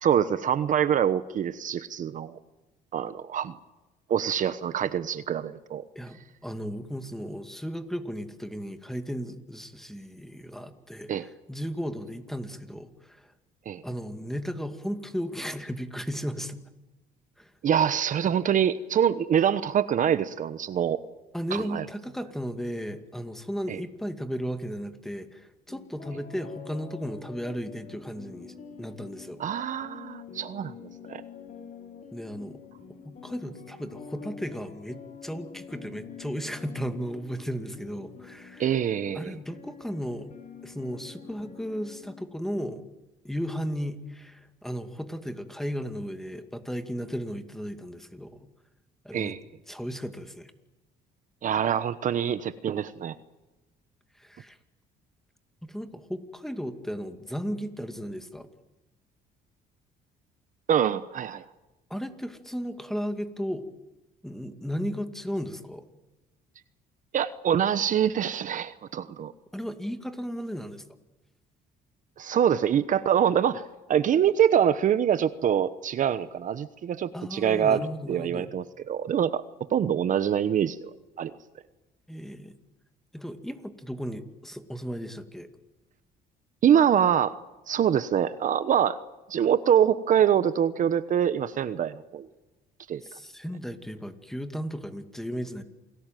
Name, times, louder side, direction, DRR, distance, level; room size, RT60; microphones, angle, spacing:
voice 1, 0.0-2.4 2.9-3.5 4.1-5.8 11.1-11.2 13.7-13.8 17.6-21.0 21.5-21.9 23.7-23.8 29.4-31.2 38.6-39.3 49.1-49.4 51.4-53.1 60.7-61.4 67.1-69.3 72.2-73.6 73.9-79.4 79.7-80.9 81.2-81.3 86.6-87.4 87.7-89.0 89.3-92.3 92.9-93.0, right 9 dB, 50° right, 13 dB, 1.1 m, -25 dB
voice 2, 6.0-13.3 13.8-16.6 17.4-17.5 21.3-29.4 32.1-32.6 33.0-38.7 39.1-40.3 40.6-42.8 43.2-48.5 49.0-49.3 49.7-50.5 54.2-54.6 55.6-58.5 61.9-63.7 64.2-65.9 69.5-70.8 77.1-78.5 82.1-82.5 83.1-85.5 93.0-95.6, equal, ahead, 8 dB, 2.3 m, -35 dB
sound 1, 25.7-42.2, left 6 dB, 45° left, 4.4 m, -46 dB
28.5 x 19.5 x 9.2 m, 1.1 s
cardioid pair, 110°, 17 cm